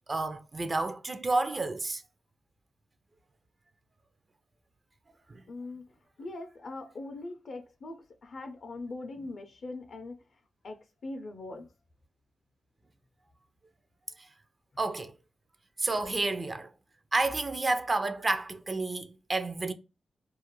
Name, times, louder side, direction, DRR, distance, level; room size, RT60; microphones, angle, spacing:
voice 1, 0.1-2.0 5.3-5.4 14.2-14.3 14.8-15.1 15.8-16.7 17.1-19.7, right 2 dB, 35° right, 0.4 m, -30 dB
voice 2, 5.5-5.8 6.2-10.2 10.6-11.7, left 2 dB, 65° left, 0.4 m, -41 dB
2.3 x 2.1 x 2.9 m
cardioid pair, 70°, 0 cm